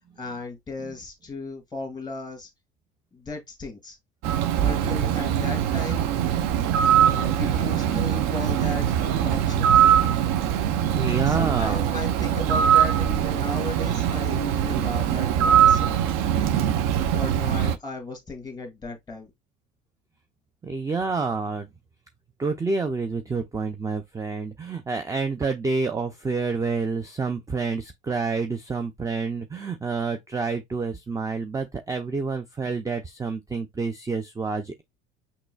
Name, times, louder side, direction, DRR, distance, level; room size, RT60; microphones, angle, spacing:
voice 1, 0.2-2.5 3.1-4.0 4.6-6.0 6.9-9.9 11.3-16.0 16.5-16.7 17.0-19.3, left 3 dB, 10° left, 1.9 m, -35 dB
Bird, 4.2-17.8, right 9 dB, 50° right, 0.7 m, -22 dB
voice 2, 10.9-11.9 20.6-21.7 22.4-34.8, right 4 dB, 10° right, 0.5 m, -28 dB
6.0 x 2.9 x 2.3 m
figure-of-eight pair, 65°, 35 cm